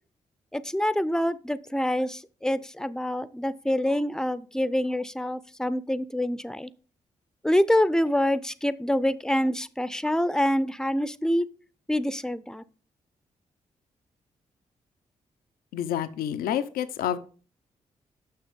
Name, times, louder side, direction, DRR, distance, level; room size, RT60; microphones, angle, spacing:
voice 1, 0.5-6.7 7.4-11.5 11.9-12.6, left 1 dB, 5° left, 17 dB, 0.6 m, -26 dB
voice 2, 15.7-17.2, left 10 dB, 85° left, 11 dB, 0.6 m, -28 dB
6.7 x 6.0 x 5.2 m, 0.40 s
supercardioid pair, 50°, 15 cm